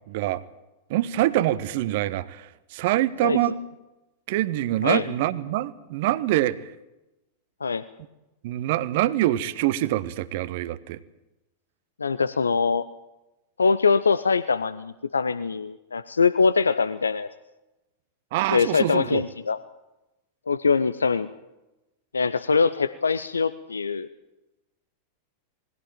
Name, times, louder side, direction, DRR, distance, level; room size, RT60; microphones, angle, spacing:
voice 1, 0.1-0.4 0.9-2.4 2.7-3.6 4.3-6.6 8.4-11.0 18.3-19.2, right 14 dB, 50° right, 16 dB, 1.0 m, -25 dB
voice 2, 4.8-5.1 7.6-7.8 12.0-12.8 13.6-17.3 18.5-19.6 20.5-21.3 22.1-24.1, left 5 dB, 75° left, 15 dB, 0.6 m, -23 dB
20.5 x 16.5 x 9.0 m, 1.0 s
figure-of-eight pair, 90°, 0 cm